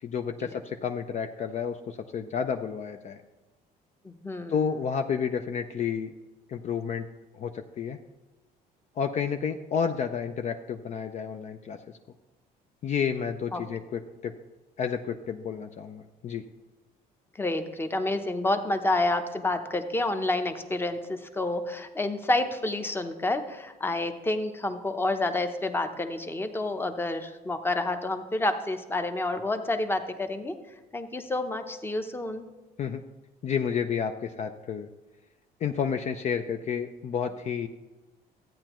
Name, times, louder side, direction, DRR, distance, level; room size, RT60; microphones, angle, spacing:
voice 1, 0.0-3.2 4.5-6.1 6.5-7.1 7.3-8.0 9.0-11.8 12.8-14.3 14.8-16.4 32.8-33.0 33.4-34.9 35.6-37.7, left 7 dB, 45° left, 6 dB, 0.5 m, -30 dB
voice 2, 4.0-4.6 13.5-13.6 17.4-30.5 30.9-32.4, left 2 dB, 15° left, 7 dB, 0.8 m, -29 dB
13.5 x 8.8 x 3.0 m, 1.1 s
cardioid pair, 110°, 17 cm